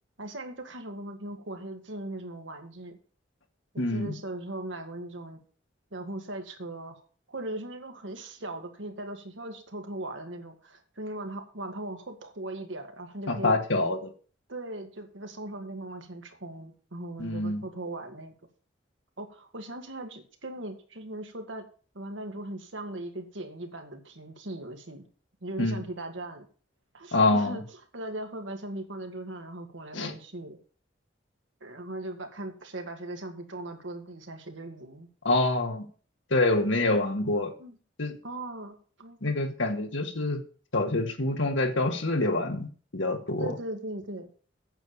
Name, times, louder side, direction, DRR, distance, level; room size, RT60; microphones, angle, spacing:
voice 1, 0.2-3.0 3.7-5.4 5.9-7.0 7.3-13.6 14.5-18.3 19.2-21.6 21.9-25.1 25.4-26.5 26.9-27.6 27.9-30.6 31.6-35.1 37.6-37.7 38.2-39.2 43.4-44.3, right 1 dB, 85° right, 5 dB, 2.1 m, -39 dB
voice 2, 3.8-4.1 13.3-14.1 17.2-17.6 25.6-25.8 27.1-27.6 29.9-30.1 35.3-35.9 36.3-37.5 38.0-38.1 39.2-40.4 40.7-43.6, left 2 dB, 85° left, 4 dB, 1.8 m, -26 dB
9.0 x 7.0 x 7.3 m, 0.40 s
head